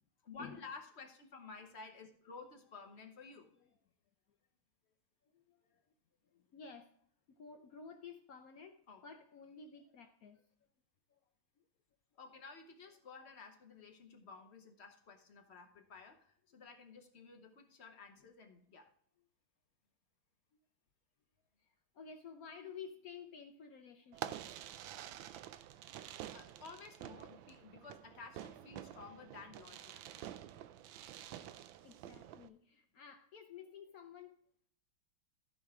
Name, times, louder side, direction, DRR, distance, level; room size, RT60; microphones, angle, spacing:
voice 1, 0.2-3.8 5.7-5.8 8.9-9.0 12.1-18.9 26.0-29.9, left 4 dB, 40° left, 4 dB, 1.0 m, -53 dB
voice 2, 5.2-5.6 6.2-6.9 7.3-10.4 11.1-11.2 21.6-24.4 31.8-34.4, left 6 dB, 75° left, 5 dB, 0.8 m, -53 dB
Fireworks, 24.1-32.5, right 11 dB, 75° right, 1.3 m, -49 dB
15.0 x 5.0 x 3.6 m, 0.64 s
omnidirectional pair, 2.4 m